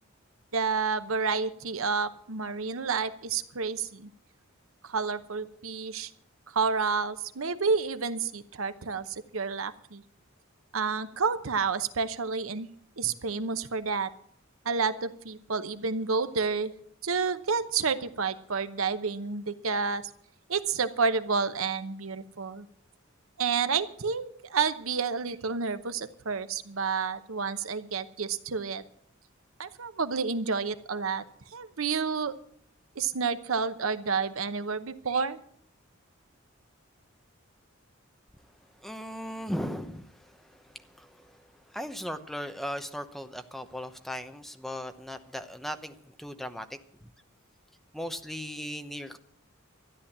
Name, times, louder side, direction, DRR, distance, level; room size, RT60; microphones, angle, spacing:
voice 1, 0.5-4.1 4.8-6.1 6.5-10.0 10.7-12.7 13.0-14.1 14.6-16.7 17.0-20.1 20.5-22.7 23.4-28.8 29.6-31.2 31.5-32.3 33.0-35.4, right 5 dB, 85° right, 12 dB, 0.9 m, -30 dB
voice 2, 38.8-41.4 41.7-46.7 47.9-49.2, equal, ahead, 8 dB, 0.9 m, -37 dB
13.0 x 10.5 x 7.3 m, 0.64 s
head